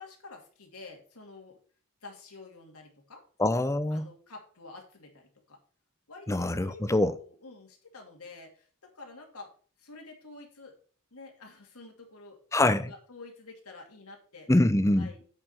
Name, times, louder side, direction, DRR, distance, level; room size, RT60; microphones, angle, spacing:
voice 1, 0.0-1.6 2.0-3.2 3.9-5.6 6.1-9.5 9.8-10.8 11.1-12.4 12.8-14.5 15.0-15.3, left 3 dB, 80° left, 2.4 m, -49 dB
voice 2, 3.4-4.1 6.3-7.2 12.5-12.9 14.5-15.1, left 1 dB, 15° left, 0.5 m, -24 dB
8.9 x 5.0 x 5.5 m
head